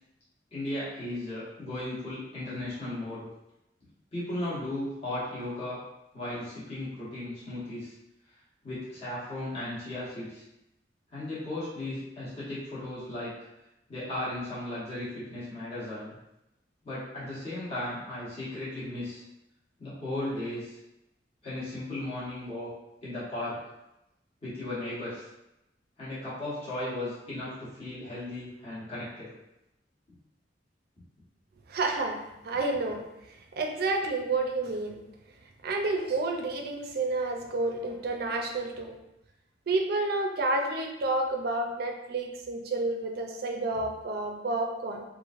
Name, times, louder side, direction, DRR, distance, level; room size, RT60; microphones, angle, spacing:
voice 1, 0.5-3.3 4.1-5.8 6.1-7.9 8.6-10.4 11.1-13.3 13.9-16.1 16.8-19.2 19.8-20.8 21.4-22.7 23.0-23.6 24.4-25.3 26.0-29.3, left 1 dB, 35° left, -11 dB, 1.0 m, -36 dB
voice 2, 31.7-35.0 35.6-38.9 39.7-45.0, right 2 dB, 60° right, 3 dB, 0.4 m, -30 dB
3.1 x 2.5 x 2.4 m, 0.89 s
head